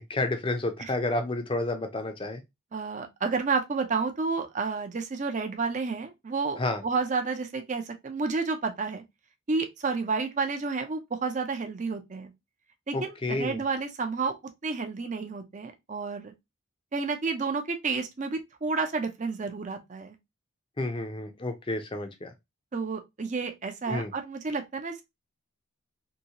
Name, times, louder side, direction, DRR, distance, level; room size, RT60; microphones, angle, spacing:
voice 1, 0.0-2.4 6.6-6.8 12.9-13.6 20.8-22.3 23.9-24.1, left 2 dB, 25° left, 0.5 m, -30 dB
voice 2, 2.7-9.0 9.5-12.3 12.9-14.3 14.6-16.3 16.9-20.2 22.7-25.0, right 4 dB, 35° right, 0.5 m, -30 dB
2.8 x 2.7 x 2.8 m
head